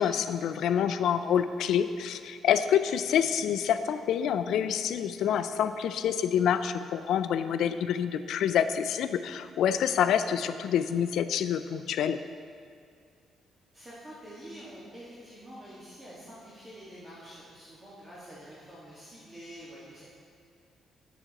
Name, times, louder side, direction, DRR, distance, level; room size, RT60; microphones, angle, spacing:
voice 1, 0.0-12.2, left 8 dB, 75° left, 11 dB, 0.3 m, -27 dB
voice 2, 13.7-20.0, equal, 20° right, -9 dB, 1.6 m, -47 dB
9.8 x 7.0 x 2.9 m, 2.2 s
cardioid pair, 90°, 0 cm